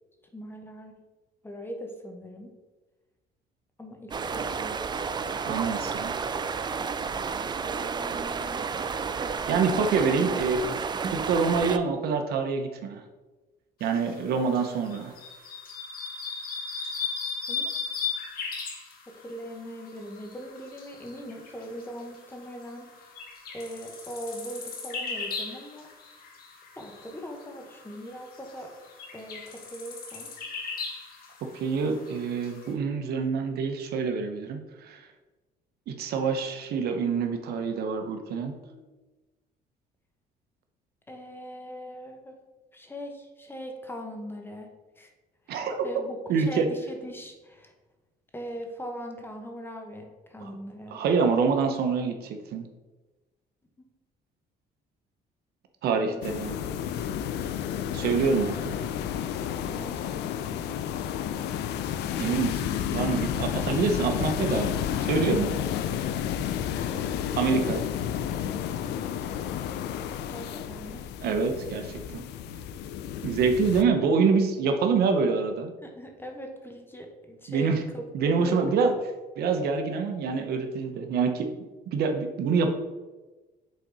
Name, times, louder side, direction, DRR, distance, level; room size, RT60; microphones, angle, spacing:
voice 1, 0.3-1.0 1.4-2.6 3.8-4.9 7.6-8.7 17.5-17.7 19.2-23.0 23.5-25.9 26.8-28.7 29.1-30.3 38.5-38.9 41.1-42.4 42.7-45.1 45.5-47.7 48.3-51.0 55.9-56.3 56.6-57.0 57.2-57.3 59.5-60.7 63.3-63.5 66.7-67.1 70.3-71.1 75.8-79.0, equal, 15° left, 3 dB, 1.1 m, -40 dB
sound 1, 4.1-11.8, right 5 dB, 25° right, 0.4 m, -31 dB
voice 2, 5.4-6.2 9.3-10.8 11.1-13.0 13.8-15.1 31.5-35.0 35.9-38.5 45.5-45.9 46.3-46.7 50.4-50.6 50.9-52.7 55.8-56.6 57.9-58.7 62.2-65.7 67.4-67.9 71.2-72.3 73.2-75.7 77.5-77.8 78.1-78.9 79.4-81.5 81.9-82.7, right 5 dB, 70° right, 5 dB, 0.9 m, -26 dB
sound 2, 13.8-32.7, left 5 dB, 60° left, 1.6 m, -38 dB
sound 3, 56.2-73.8, left 9 dB, 80° left, 0.5 m, -31 dB
6.8 x 4.0 x 4.7 m, 1.2 s
cardioid pair, 110°, 17 cm